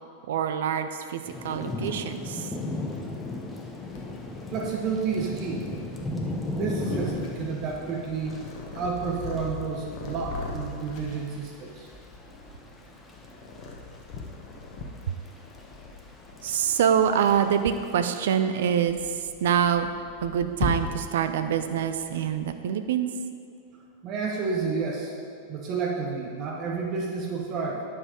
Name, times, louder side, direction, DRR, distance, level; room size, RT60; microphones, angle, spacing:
voice 1, 0.3-2.5 16.4-19.9 20.2-23.1, right 8 dB, 60° right, 9 dB, 0.5 m, -25 dB
Thunder / Rain, 1.3-18.3, left 2 dB, 10° left, 0.9 m, -38 dB
Purr, 3.9-22.6, left 3 dB, 40° left, 1.1 m, -40 dB
voice 2, 4.5-5.7 6.0-6.2 6.5-8.3 8.7-11.9 24.0-25.1 25.5-27.8, right 5 dB, 35° right, 0 dB, 0.9 m, -30 dB
9.5 x 5.6 x 5.0 m, 2.3 s
figure-of-eight pair, 90°, 0 cm